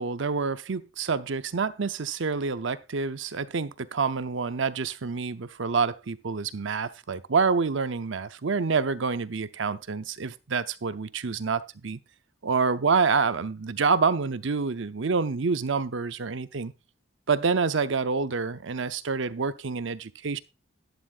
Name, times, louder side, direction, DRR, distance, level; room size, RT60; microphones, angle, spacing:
voice 1, 0.0-12.0 12.4-16.7 17.3-20.4, right 5 dB, 75° right, 0.7 m, -27 dB
11.5 x 11.0 x 2.5 m
head